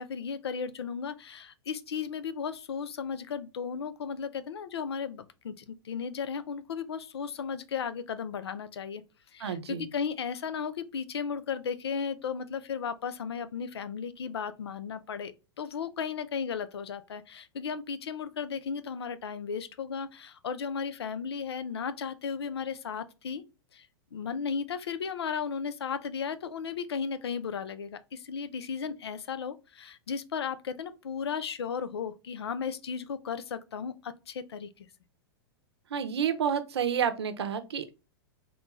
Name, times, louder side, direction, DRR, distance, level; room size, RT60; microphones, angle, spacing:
voice 1, 0.0-9.0 9.3-23.4 23.7-34.9, left 6 dB, 90° left, 0.5 m, -35 dB
voice 2, 9.4-9.9 35.9-37.9, right 8 dB, 85° right, 0.6 m, -29 dB
3.7 x 2.3 x 3.0 m
hypercardioid pair, 115°, 13 cm